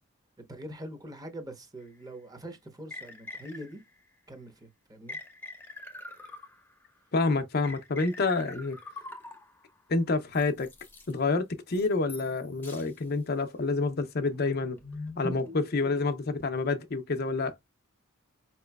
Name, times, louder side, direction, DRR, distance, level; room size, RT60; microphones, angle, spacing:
voice 1, 0.5-3.8 4.3-5.2, right 1 dB, 20° right, 0.9 m, -43 dB
sound 1, 1.9-2.0 2.9-4.0 5.1-6.9 7.6-9.7 10.3-11.1 11.7-12.4 12.6-12.9 13.4-13.6 14.3-16.2, left 2 dB, 10° left, 0.7 m, -43 dB
voice 2, 7.1-8.8 9.9-10.7 11.1-14.8 15.2-17.6, left 3 dB, 50° left, 0.6 m, -28 dB
4.8 x 2.9 x 2.3 m
head